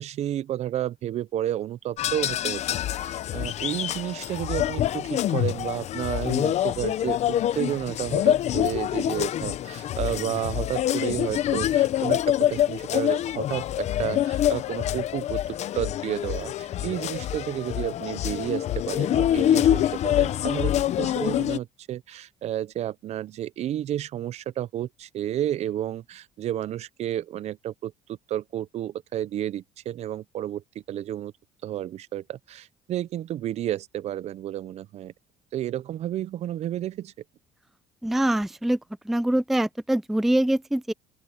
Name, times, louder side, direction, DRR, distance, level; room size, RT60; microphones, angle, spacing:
voice 1, 0.0-15.4 15.7-31.3 31.6-35.1 35.5-37.1, right 12 dB, 50° right, 0.6 m, -31 dB
sound 1, 2.0-21.6, left 12 dB, 50° left, 0.8 m, -26 dB
voice 2, 38.0-38.8 39.1-40.9, right 1 dB, ahead, 0.4 m, -24 dB
open air
cardioid pair, 110°, 14 cm